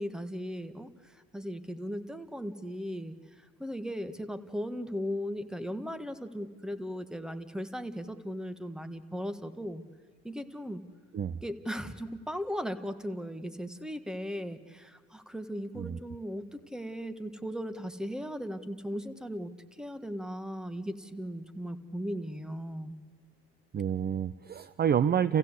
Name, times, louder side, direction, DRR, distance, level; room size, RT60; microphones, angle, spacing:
voice 1, 0.0-3.1 3.6-9.8 10.2-10.8 11.4-19.5 19.8-23.0, equal, ahead, 10 dB, 1.6 m, -37 dB
voice 2, 23.7-25.4, right 8 dB, 30° right, 16 dB, 0.6 m, -28 dB
29.5 x 16.0 x 8.2 m, 1.5 s
hypercardioid pair, 70°, 32 cm